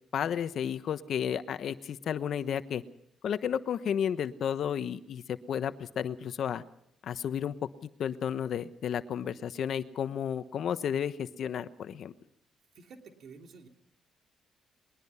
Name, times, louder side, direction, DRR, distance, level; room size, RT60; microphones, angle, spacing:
voice 1, 0.1-2.8 3.2-6.6 7.0-7.5 7.8-12.1, left 8 dB, 65° left, 12 dB, 1.1 m, -32 dB
voice 2, 12.7-13.7, right 5 dB, 65° right, 4 dB, 3.1 m, -50 dB
21.5 x 21.0 x 5.7 m, 0.76 s
cardioid pair, 90°, 0 cm